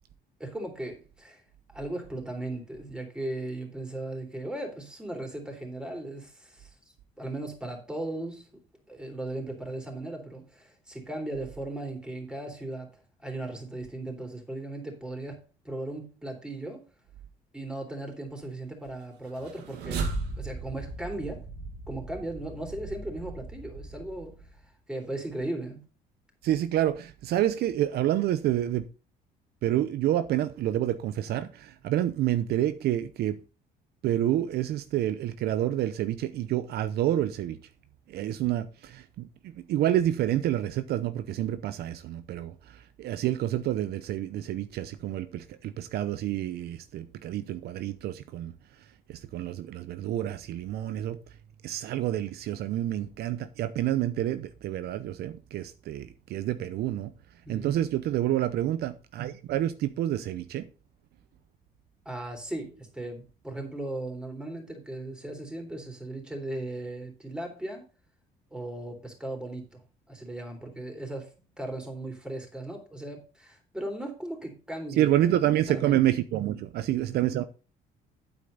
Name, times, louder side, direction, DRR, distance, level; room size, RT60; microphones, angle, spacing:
voice 1, 0.4-1.4 1.7-6.7 7.2-8.5 8.9-12.9 13.2-16.8 17.5-20.0 20.4-21.4 21.9-24.3 24.9-25.8 57.4-57.8 62.1-67.8 68.5-69.8 70.1-71.3 71.6-75.1 75.7-76.0, right 1 dB, 5° right, 3.6 m, -37 dB
sound 1, 19.3-24.6, right 3 dB, 90° right, 2.2 m, -37 dB
voice 2, 26.4-28.9 29.6-33.4 34.0-37.6 38.1-48.5 49.1-51.2 51.6-57.1 57.5-60.7 75.0-77.4, right 12 dB, 70° right, 0.7 m, -28 dB
9.0 x 8.1 x 3.9 m
cardioid pair, 110°, 17 cm